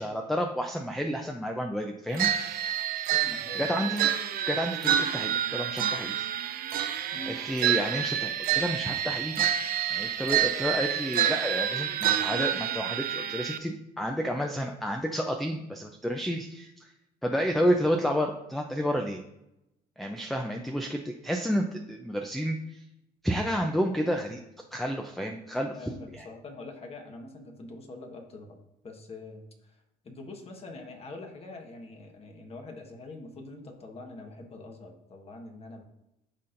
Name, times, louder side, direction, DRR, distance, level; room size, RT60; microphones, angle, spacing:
voice 1, 0.0-2.3 3.5-4.1 4.5-6.3 7.3-9.4 9.9-16.9 17.2-19.2 20.0-22.8 23.2-24.4 24.7-25.7 26.2-26.3, equal, ahead, 3 dB, 0.5 m, -30 dB
sound 1, 2.2-13.6, right 10 dB, 60° right, 0.5 m, -28 dB
voice 2, 3.1-3.7 7.1-7.4 25.7-28.6 28.8-35.8, left 2 dB, 35° left, 3 dB, 1.3 m, -44 dB
12.5 x 4.2 x 2.6 m, 0.87 s
cardioid pair, 110°, 17 cm